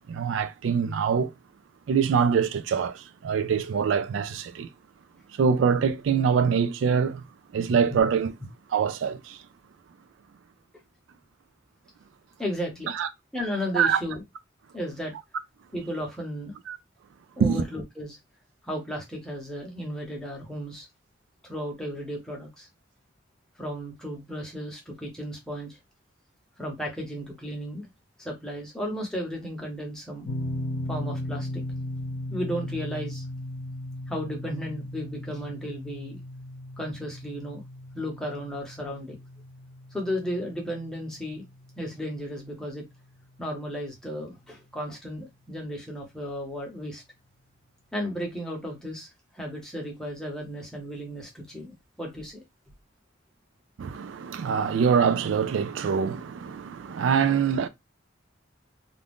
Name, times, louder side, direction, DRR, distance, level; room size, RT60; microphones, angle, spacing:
voice 1, 0.1-1.3 1.9-4.7 5.4-7.2 7.5-8.3 8.7-9.4 12.9-13.1 13.7-14.0 16.7-16.8 17.4-17.6 53.8-57.7, right 6 dB, 70° right, 0.3 m, -24 dB
voice 2, 12.4-12.9 13.3-14.2 14.7-15.1 15.7-16.5 17.4-18.2 18.6-20.9 21.4-22.7 23.6-25.8 26.6-27.9 28.2-30.3 30.9-31.6 32.3-33.2 34.1-36.2 36.8-37.6 37.9-39.2 39.9-41.4 41.8-42.8 43.4-47.0 47.9-49.1 49.3-52.4, equal, 5° left, 0.9 m, -34 dB
sound 1, 30.3-43.2, left 1 dB, 80° left, 0.6 m, -37 dB
2.5 x 2.3 x 3.4 m
head